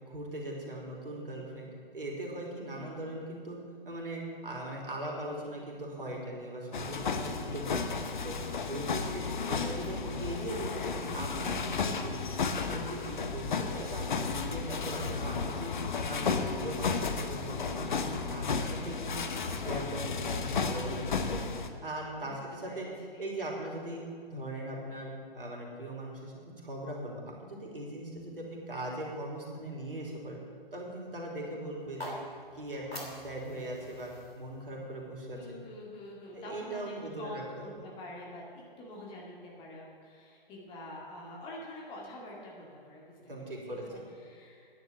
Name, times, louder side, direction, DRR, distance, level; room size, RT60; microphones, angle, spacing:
voice 1, 0.0-1.7 1.9-3.6 3.9-7.8 8.2-19.2 19.5-22.9 23.2-30.4 30.7-32.2 32.5-35.4 36.3-37.7 43.3-44.1, right 1 dB, 65° right, -2 dB, 3.5 m, -40 dB
voice 2, 2.7-3.2 8.9-9.4 22.1-22.3 22.6-23.3 35.3-38.4 38.8-43.5 43.8-44.7, left 1 dB, 15° left, -3 dB, 2.2 m, -46 dB
sound 1, 6.7-21.7, left 5 dB, 50° left, 1.1 m, -33 dB
sound 2, 31.8-35.9, equal, 85° left, 3.1 m, -46 dB
10.5 x 10.5 x 7.1 m, 2.3 s
figure-of-eight pair, 130°, 30 cm